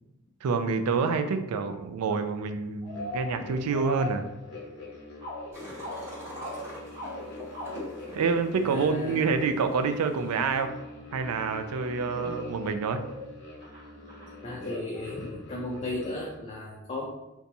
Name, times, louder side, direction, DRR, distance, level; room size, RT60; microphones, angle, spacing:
voice 1, 0.4-4.3 8.1-10.7 11.1-13.0, right 5 dB, 80° right, 8 dB, 0.3 m, -27 dB
sound 1, 2.1-2.4 2.8-4.9 5.2-8.0 11.1-11.2 12.2-12.5 12.8-15.0, left 1 dB, 50° right, 1.0 m, -40 dB
sound 2, 2.8-16.4, left 2 dB, 50° left, 0.9 m, -44 dB
sound 3, 5.5-10.6, left 1 dB, 10° right, 0.9 m, -44 dB
voice 2, 8.6-9.2 14.4-17.1, left 1 dB, 25° left, -2 dB, 0.3 m, -35 dB
3.9 x 2.3 x 2.7 m, 0.95 s
head